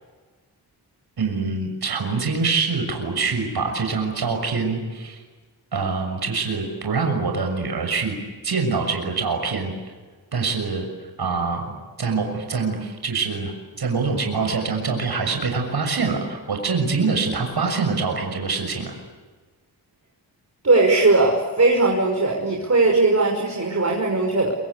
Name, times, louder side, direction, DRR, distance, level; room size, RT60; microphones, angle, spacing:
voice 1, 1.2-5.2 5.7-8.1 8.4-9.7 10.3-10.9 11.2-18.9, right 4 dB, 70° right, 4 dB, 6.5 m, -25 dB
voice 2, 20.6-24.5, right 3 dB, 40° right, 0 dB, 5.7 m, -19 dB
27.5 x 25.5 x 8.5 m, 1.4 s
cardioid pair, 70°, 40 cm